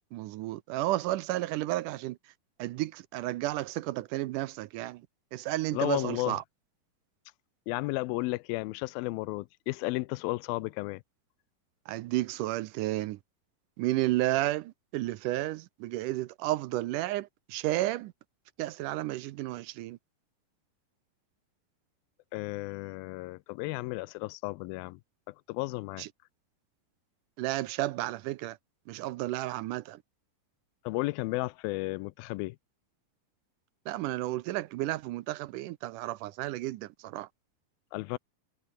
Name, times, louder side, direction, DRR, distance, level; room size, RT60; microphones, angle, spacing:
voice 1, 0.1-2.2 2.6-5.0 5.3-6.4 11.9-13.2 13.8-18.1 18.6-20.0 26.0-26.1 27.4-28.6 28.9-30.0 33.9-37.3, right 16 dB, 80° right, 2.0 m, -32 dB
voice 2, 5.7-6.4 7.7-11.0 22.3-25.0 25.3-26.1 30.9-32.6 37.9-38.2, left 21 dB, 85° left, 2.4 m, -33 dB
omnidirectional pair, 4.2 m